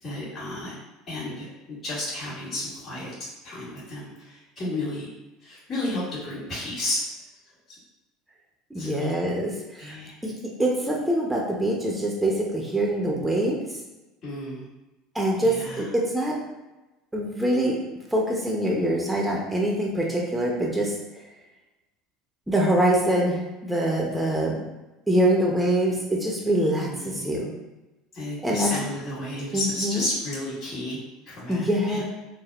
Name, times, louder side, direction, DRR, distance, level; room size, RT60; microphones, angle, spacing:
voice 1, 0.0-0.7 1.1-5.1 5.4-7.1 8.8-9.1 9.8-10.1 14.2-14.7 15.4-15.9 24.3-24.4 26.8-27.3 28.1-31.0 31.3-32.0, left 1 dB, 40° left, -11 dB, 1.5 m, -32 dB
voice 2, 8.7-10.0 10.2-10.3 10.6-13.6 15.1-16.4 17.1-17.7 18.1-20.9 22.5-24.6 25.1-27.5 28.4-28.7 29.5-30.0 31.5-32.0, right 1 dB, 5° right, -2 dB, 0.6 m, -24 dB
3.3 x 2.0 x 2.4 m, 1.1 s
hypercardioid pair, 85°, 0 cm